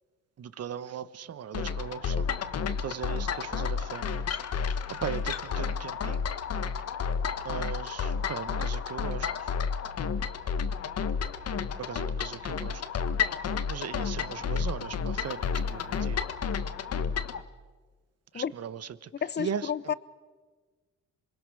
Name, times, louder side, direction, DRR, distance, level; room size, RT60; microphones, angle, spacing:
voice 1, 0.4-2.3 2.8-4.4 4.9-6.3 7.4-9.5 11.8-12.8 13.7-16.2 18.3-19.1 19.4-19.9, right 8 dB, 55° right, 15 dB, 1.1 m, -38 dB
sound 1, 1.5-17.4, left 6 dB, 55° left, 1.3 m, -31 dB
voice 2, 19.2-19.9, left 8 dB, 35° left, 18 dB, 0.8 m, -31 dB
26.5 x 21.5 x 6.4 m, 1.4 s
cardioid pair, 90°, 30 cm